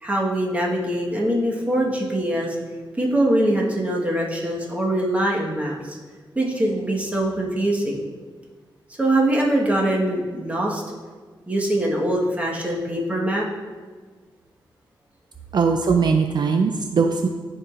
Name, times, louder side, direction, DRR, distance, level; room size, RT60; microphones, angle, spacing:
voice 1, 0.0-2.6 3.0-6.0 6.3-8.0 9.0-10.8 11.5-13.4, right 1 dB, 15° right, -3 dB, 1.3 m, -23 dB
voice 2, 15.5-17.3, right 5 dB, 55° right, 4 dB, 0.4 m, -20 dB
12.5 x 4.7 x 2.4 m, 1.5 s
wide cardioid pair, 105°, 9 cm